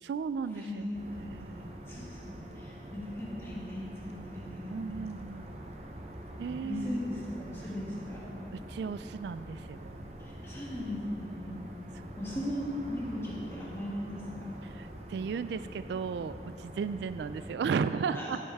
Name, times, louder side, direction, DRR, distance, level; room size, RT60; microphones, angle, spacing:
voice 1, 0.0-1.8 4.7-5.5 6.4-7.0 8.5-10.1 14.7-18.4, right 5 dB, 75° right, 13 dB, 0.3 m, -35 dB
voice 2, 0.5-1.0 1.3-1.4 1.9-4.8 6.6-8.4 10.2-11.6 12.2-14.5 18.1-18.3, left 1 dB, 15° left, -7 dB, 2.3 m, -38 dB
sound 1, 0.9-17.5, right 1 dB, 35° right, 0.7 m, -45 dB
14.5 x 8.5 x 3.5 m, 2.8 s
head